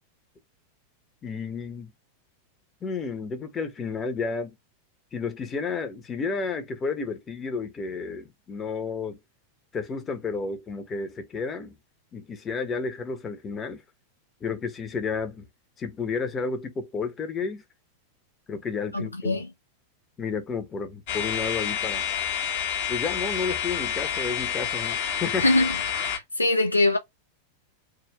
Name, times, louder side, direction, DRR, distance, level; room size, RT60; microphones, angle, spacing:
voice 1, 1.2-1.9 2.8-4.6 5.1-9.2 9.7-11.8 12.1-13.8 14.4-15.5 15.8-17.6 18.5-19.4 20.2-22.0 22.9-25.4, left 5 dB, 20° left, 0.9 m, -31 dB
voice 2, 18.9-19.5 25.4-25.8 26.1-27.0, left 2 dB, 85° left, 0.7 m, -23 dB
sound 1, 21.1-26.2, left 8 dB, 50° left, 1.0 m, -29 dB
3.6 x 2.4 x 3.0 m
figure-of-eight pair, 90°, 0 cm